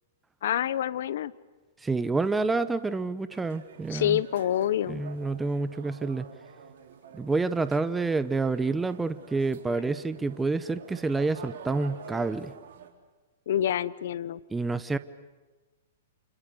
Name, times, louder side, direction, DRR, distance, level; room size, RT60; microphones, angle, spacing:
voice 1, 0.4-1.3 3.9-5.0 13.5-14.4, left 11 dB, 65° left, 18 dB, 1.0 m, -27 dB
voice 2, 1.8-4.2 4.9-6.3 7.1-12.5 14.5-15.0, right 3 dB, 10° right, 13 dB, 0.9 m, -28 dB
sound 1, 3.3-12.9, right 7 dB, 65° right, 3.7 m, -48 dB
30.0 x 28.0 x 7.0 m, 1.2 s
hypercardioid pair, 125°, 0 cm